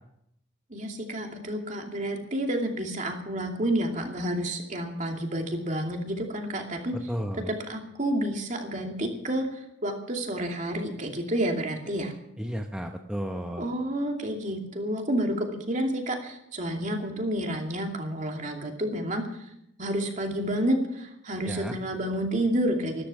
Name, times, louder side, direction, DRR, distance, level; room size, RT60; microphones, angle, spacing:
voice 1, 0.7-6.9 7.5-12.1 13.6-19.2 19.8-23.1, right 1 dB, 40° right, 2 dB, 2.6 m, -30 dB
voice 2, 6.9-7.5 12.4-13.7 21.4-21.7, equal, 5° right, 3 dB, 0.9 m, -33 dB
14.0 x 13.5 x 7.2 m, 0.78 s
head